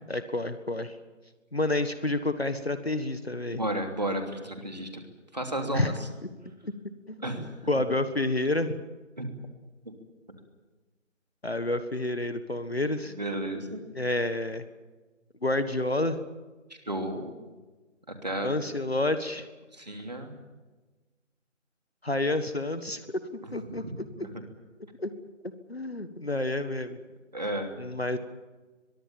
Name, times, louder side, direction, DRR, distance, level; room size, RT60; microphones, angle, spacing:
voice 1, 0.1-1.0 1.5-3.6 5.7-6.0 6.6-6.7 7.1-8.8 11.4-13.1 13.9-14.6 15.4-16.2 18.4-19.5 22.0-23.1 23.5-23.8 25.0-25.1 25.7-27.0 27.8-28.2, left 2 dB, 50° left, 10 dB, 1.6 m, -29 dB
voice 2, 3.5-5.0 5.3-6.1 7.2-7.5 9.2-9.3 9.8-9.9 13.2-13.9 16.9-17.3 18.2-18.5 19.7-20.3 23.4-23.6 24.0-24.3 27.3-27.8, right 1 dB, 35° right, 4 dB, 3.0 m, -33 dB
23.0 x 23.0 x 7.2 m, 1.2 s
figure-of-eight pair, 175°, 38 cm